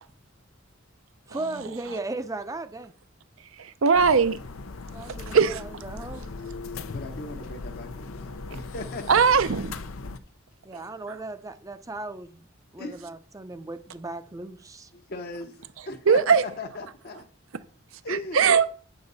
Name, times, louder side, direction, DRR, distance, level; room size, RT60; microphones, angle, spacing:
voice 1, 1.3-2.9 4.9-6.3 10.6-12.5 12.7-14.9, right 2 dB, 15° right, 0.5 m, -36 dB
voice 2, 3.5-4.4 5.3-5.6 9.1-9.7 10.7-11.2 16.1-16.4 18.1-18.6, right 6 dB, 75° right, 0.6 m, -20 dB
sound 1, 3.9-10.2, left 3 dB, 85° left, 0.7 m, -38 dB
voice 3, 6.9-9.2 12.8-13.1 14.9-17.3 18.0-18.4, left 2 dB, 50° left, 0.9 m, -38 dB
8.9 x 6.8 x 4.0 m
head